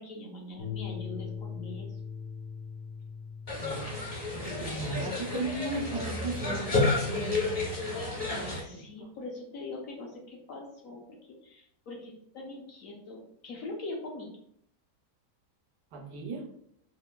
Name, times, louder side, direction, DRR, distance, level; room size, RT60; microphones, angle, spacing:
voice 1, 0.0-2.0 5.4-5.6 8.6-14.3, left 2 dB, 65° left, -1 dB, 0.9 m, -42 dB
sound 1, 0.6-7.7, left 6 dB, 85° left, 1.4 m, -42 dB
sound 2, 3.5-8.6, left 3 dB, 40° left, 0.5 m, -31 dB
voice 2, 4.3-7.4 8.3-9.1 15.9-16.5, right 3 dB, 75° right, 3 dB, 1.2 m, -37 dB
5.3 x 2.5 x 2.2 m, 0.70 s
omnidirectional pair, 1.8 m